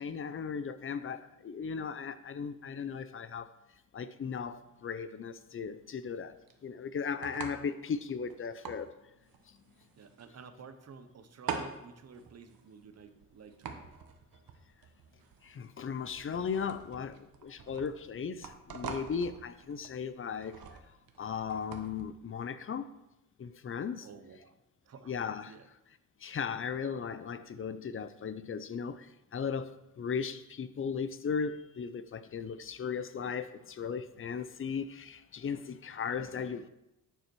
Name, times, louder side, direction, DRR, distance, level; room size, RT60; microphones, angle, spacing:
voice 1, 0.0-3.5 3.9-8.9 15.4-20.6 21.2-22.9 23.4-24.1 25.1-25.5 26.2-36.7, left 6 dB, 40° left, 0.5 m, -37 dB
sound 1, 4.3-22.1, right 6 dB, 90° right, 1.1 m, -46 dB
voice 2, 10.0-13.9 24.0-24.5 24.8-25.2 25.5-25.7, right 5 dB, 50° right, 0.9 m, -51 dB
9.7 x 6.9 x 4.6 m
wide cardioid pair, 165°, 34 cm